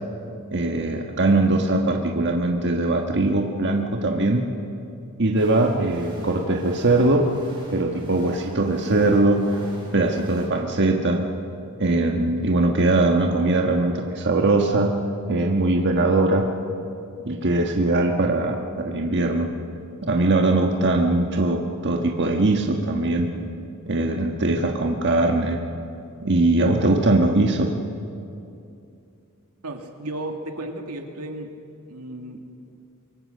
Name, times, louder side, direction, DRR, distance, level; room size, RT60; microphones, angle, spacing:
voice 1, 0.5-4.5 5.2-7.3 7.7-9.4 9.9-11.2 11.8-15.0 15.3-16.5 17.2-18.6 18.8-19.5 20.0-23.3 23.9-25.6 26.2-27.7, right 2 dB, 55° right, 2 dB, 1.5 m, -21 dB
sound 1, 5.4-10.5, right 1 dB, 20° right, 6.4 m, -43 dB
voice 2, 29.6-31.6 31.9-32.5, right 1 dB, 85° right, 4 dB, 2.2 m, -34 dB
25.0 x 23.0 x 6.6 m, 2.6 s
head